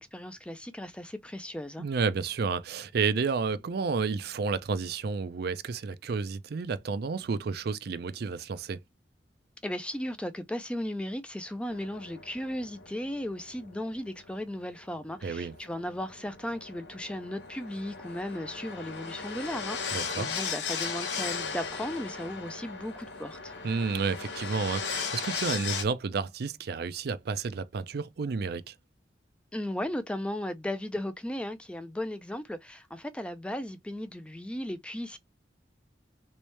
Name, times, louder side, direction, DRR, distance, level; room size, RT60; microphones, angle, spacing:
voice 1, 0.0-1.9 9.6-23.5 29.5-35.2, left 1 dB, 5° left, 0.4 m, -36 dB
voice 2, 1.8-8.8 15.2-15.5 19.9-20.3 23.6-28.7, right 5 dB, 60° right, 0.4 m, -31 dB
sound 1, 11.7-25.8, left 5 dB, 80° left, 0.9 m, -37 dB
3.1 x 3.0 x 3.1 m
head